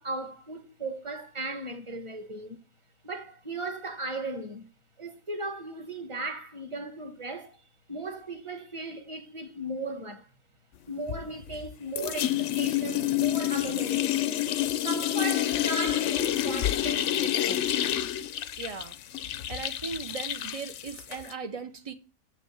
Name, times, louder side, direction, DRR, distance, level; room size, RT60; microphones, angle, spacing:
voice 1, 0.0-2.6 3.0-4.7 5.0-7.6 7.9-10.3 10.9-14.5 14.8-17.7, right 2 dB, 20° right, 1.1 m, -37 dB
sound 1, 11.1-11.7 12.0-21.3, left 12 dB, 65° left, 0.8 m, -28 dB
voice 2, 18.6-18.9 19.5-21.9, right 5 dB, 50° right, 0.4 m, -38 dB
7.4 x 5.9 x 7.0 m
omnidirectional pair, 1.6 m